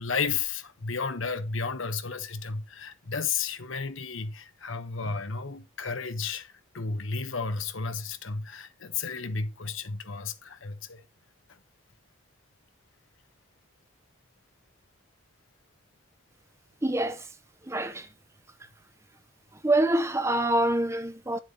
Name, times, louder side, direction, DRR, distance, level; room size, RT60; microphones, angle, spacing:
voice 1, 0.0-11.0, left 5 dB, 75° left, 1.2 m, -33 dB
voice 2, 16.8-17.2 17.7-18.1 19.6-21.4, right 1 dB, 15° right, 0.7 m, -25 dB
10.5 x 7.7 x 3.3 m
head